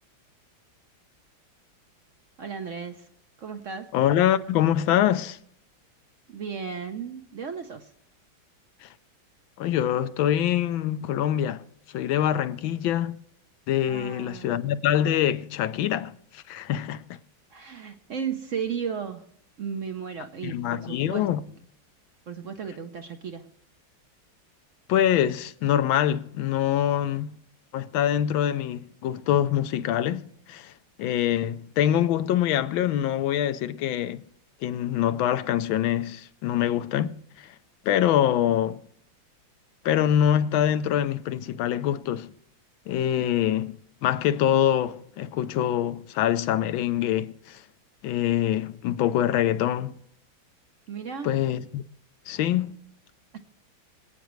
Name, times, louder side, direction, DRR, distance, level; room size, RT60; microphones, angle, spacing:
voice 1, 2.4-3.1 3.4-3.9 6.3-7.9 13.9-14.6 17.5-19.2 19.6-21.3 22.3-23.5 43.2-43.3 50.9-51.3 53.3-53.4, right 6 dB, 60° right, 0.8 m, -35 dB
voice 2, 3.9-5.4 8.8-8.9 9.6-11.6 11.9-13.1 13.7-17.2 20.4-21.4 24.9-27.4 27.7-30.7 31.0-34.2 34.6-37.5 37.8-38.8 39.8-42.3 42.9-43.8 44.0-47.6 48.0-50.0 51.2-51.8 52.3-52.7, left 11 dB, 75° left, 1.4 m, -24 dB
25.5 x 9.1 x 3.1 m
omnidirectional pair, 2.2 m